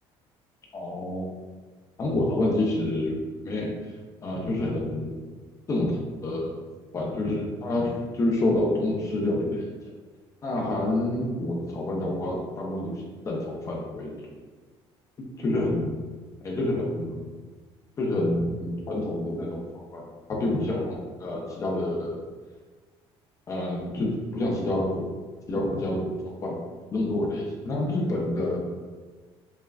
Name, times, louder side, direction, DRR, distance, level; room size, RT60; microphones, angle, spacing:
voice 1, 0.7-1.3 2.0-3.9 4.2-5.2 5.7-6.6 6.9-9.6 10.4-12.9 13.2-14.4 15.4-15.9 16.4-17.2 18.0-19.6 19.9-22.2 23.5-25.1 25.5-26.6 26.9-28.6, left 1 dB, 30° left, -2 dB, 0.6 m, -28 dB
5.4 x 2.4 x 2.3 m, 1.4 s
cardioid pair, 155°, 11 cm